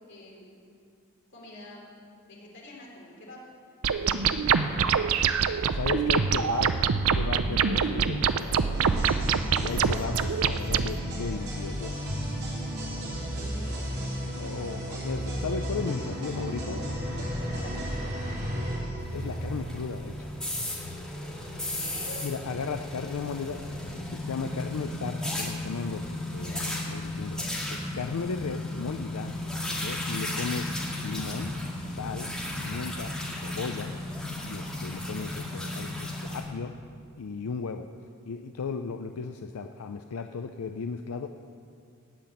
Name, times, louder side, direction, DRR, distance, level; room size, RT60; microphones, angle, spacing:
voice 1, 0.1-0.5 1.3-1.8 2.3-3.4 4.0-4.6 6.2-6.7 13.0-13.9 17.5-17.8 21.7-22.2, left 2 dB, 55° left, -3 dB, 3.5 m, -46 dB
sound 1, 3.8-10.9, right 6 dB, 75° right, 0.5 m, -25 dB
voice 2, 5.7-6.7 7.1-8.7 9.6-11.9 14.3-16.9 19.1-20.1 22.2-27.4 27.7-29.3 29.8-30.7 31.0-31.5 31.9-33.1 33.4-33.9 34.4-36.7 37.2-37.9 38.3-41.3, left 5 dB, 85° left, 7 dB, 0.5 m, -35 dB
sound 2, 8.7-20.4, equal, 50° right, 3.6 m, -33 dB
sound 3, 19.0-36.4, left 1 dB, 5° left, 2.1 m, -35 dB
15.5 x 5.9 x 9.2 m, 2.4 s
head